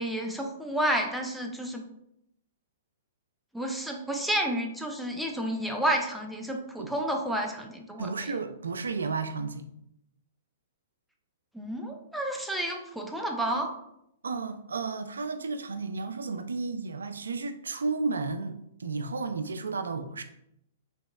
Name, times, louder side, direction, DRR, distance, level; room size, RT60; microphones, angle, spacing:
voice 1, 0.0-1.8 3.5-8.3 11.5-13.7, right 1 dB, ahead, 1 dB, 0.5 m, -30 dB
voice 2, 8.0-9.7 14.2-20.2, right 4 dB, 85° right, 9 dB, 0.3 m, -33 dB
3.4 x 2.9 x 2.3 m, 0.77 s
hypercardioid pair, 125°, 0 cm